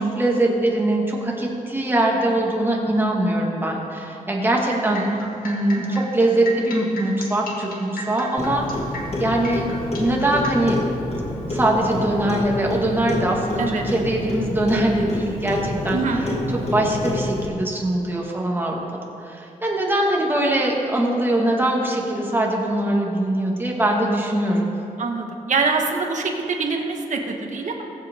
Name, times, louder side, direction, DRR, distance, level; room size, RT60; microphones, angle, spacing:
voice 1, 0.0-5.1 5.4-8.6 9.2-9.7 9.9-10.8 11.5-18.8 19.2-24.7, right 1 dB, 15° right, -2 dB, 1.9 m, -22 dB
sound 1, 4.9-10.5, left 1 dB, 90° left, 1.9 m, -35 dB
Clock, 8.4-17.5, left 1 dB, 45° left, 2.0 m, -28 dB
voice 2, 15.9-16.2 25.0-27.8, right 4 dB, 60° right, 1 dB, 1.5 m, -25 dB
21.0 x 8.0 x 3.7 m, 2.7 s
wide cardioid pair, 140°, 14 cm